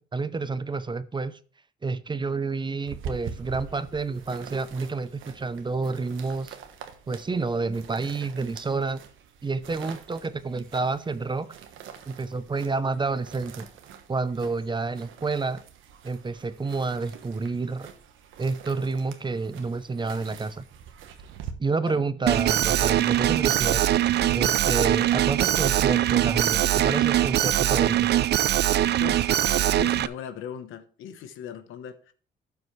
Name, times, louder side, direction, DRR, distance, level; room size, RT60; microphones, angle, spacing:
voice 1, 0.1-1.4 1.8-6.5 7.1-9.0 9.4-11.5 12.1-13.7 14.1-15.6 16.0-17.9 18.4-20.6 21.6-23.8 24.1-28.1, right 4 dB, 25° right, 0.7 m, -29 dB
sound 1, 2.9-21.5, right 7 dB, 80° right, 1.2 m, -45 dB
Alarm, 22.3-30.1, right 12 dB, 55° right, 0.4 m, -22 dB
voice 2, 29.0-29.4 29.7-32.1, left 9 dB, 90° left, 1.1 m, -39 dB
12.0 x 7.2 x 3.2 m
cardioid pair, 90°, 20 cm